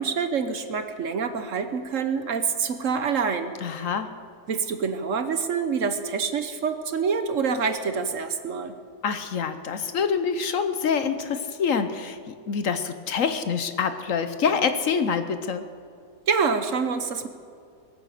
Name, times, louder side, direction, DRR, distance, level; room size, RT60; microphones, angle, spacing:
voice 1, 0.0-3.6 4.5-8.8 16.3-17.3, right 5 dB, 60° right, 9 dB, 1.2 m, -26 dB
voice 2, 3.6-4.1 9.0-15.7, left 6 dB, 60° left, 10 dB, 1.1 m, -26 dB
21.5 x 9.2 x 6.6 m, 2.3 s
omnidirectional pair, 1.7 m